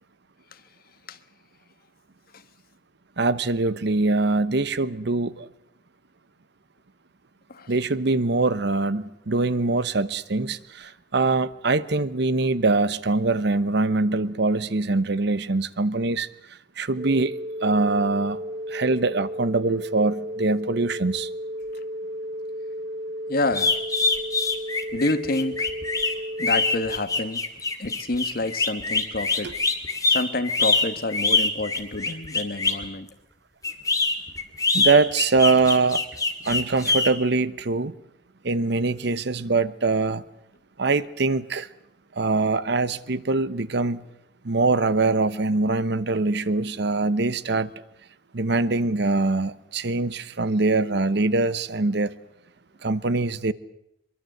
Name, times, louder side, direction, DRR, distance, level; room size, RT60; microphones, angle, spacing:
voice 1, 3.2-5.5 7.7-16.3 16.8-18.4 18.7-21.3 29.4-29.5 34.7-36.0 36.4-37.9 38.4-40.2 40.8-41.7 42.1-44.0 44.4-47.7 48.3-52.1 52.8-53.5, right 3 dB, 65° right, 1.0 m, -23 dB
sound 1, 17.0-27.0, equal, 45° right, 4.8 m, -33 dB
voice 2, 23.3-23.7 24.9-25.7 26.4-27.4 27.8-29.6 30.1-33.1, left 2 dB, 55° left, 1.5 m, -28 dB
sound 2, 23.5-32.8 33.6-37.1, left 4 dB, 20° left, 2.4 m, -24 dB
23.5 x 23.0 x 7.9 m
head